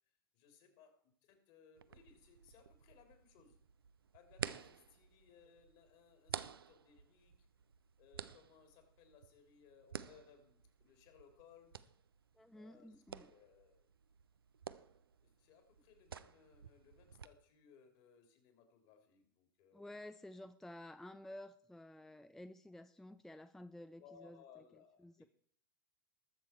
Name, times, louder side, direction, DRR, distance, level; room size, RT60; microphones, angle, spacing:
voice 1, 0.3-3.6 4.1-7.5 8.0-11.9 12.5-13.9 15.2-19.8 24.0-25.3, left 6 dB, 50° left, 5 dB, 3.3 m, -64 dB
sound 1, 1.8-17.3, right 7 dB, 80° right, 0.6 m, -51 dB
voice 2, 12.4-13.3 19.7-24.4 25.0-25.2, left 1 dB, 5° left, 11 dB, 0.5 m, -52 dB
20.5 x 7.0 x 4.6 m, 0.62 s
figure-of-eight pair, 90°, 12 cm